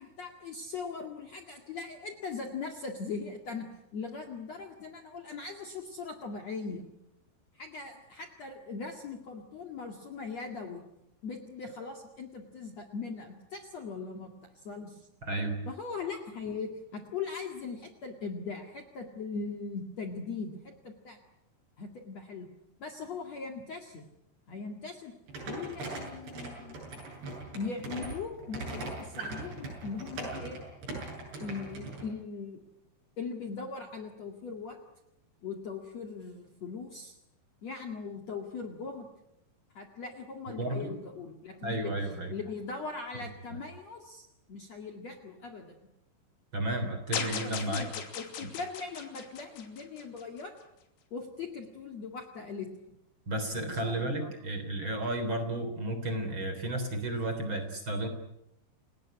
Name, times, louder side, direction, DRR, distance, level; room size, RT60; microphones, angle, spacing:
voice 1, 0.0-3.7 3.9-6.8 7.5-10.8 11.2-15.1 15.7-21.2 21.8-22.5 22.8-24.1 24.5-25.1 25.5-26.9 27.5-30.6 31.3-32.6 33.2-34.8 35.4-37.2 37.6-39.1 39.7-41.9 42.3-45.8 47.1-50.5 51.1-52.7 53.6-54.3, left 4 dB, 45° left, 3 dB, 2.5 m, -40 dB
voice 2, 15.2-15.6 40.6-40.9 41.6-42.3 46.5-47.9 48.4-48.5 53.3-58.1, right 1 dB, 30° right, 7 dB, 3.7 m, -33 dB
sound 1, 25.3-32.0, right 2 dB, 65° right, 9.8 m, -40 dB
sound 2, 47.1-50.4, left 7 dB, 90° left, 5.1 m, -38 dB
29.5 x 18.0 x 9.9 m, 0.86 s
omnidirectional pair, 5.2 m